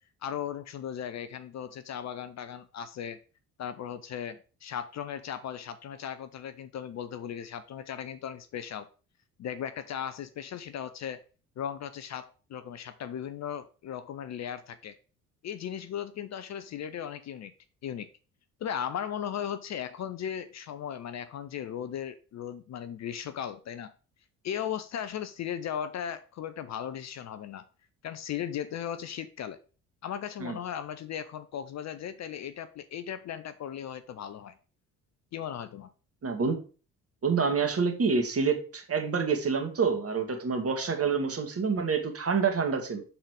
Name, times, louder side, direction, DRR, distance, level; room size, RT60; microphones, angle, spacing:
voice 1, 0.2-3.2 3.6-8.9 9.4-11.2 11.6-15.0 15.4-17.5 17.8-18.1 18.6-23.9 24.4-27.6 28.0-29.6 30.0-34.6 35.3-35.9, left 9 dB, 40° left, 0.7 m, -37 dB
voice 2, 36.2-36.6 37.2-43.0, right 5 dB, 35° right, 2.0 m, -27 dB
11.5 x 4.0 x 4.9 m
figure-of-eight pair, 45°, 43 cm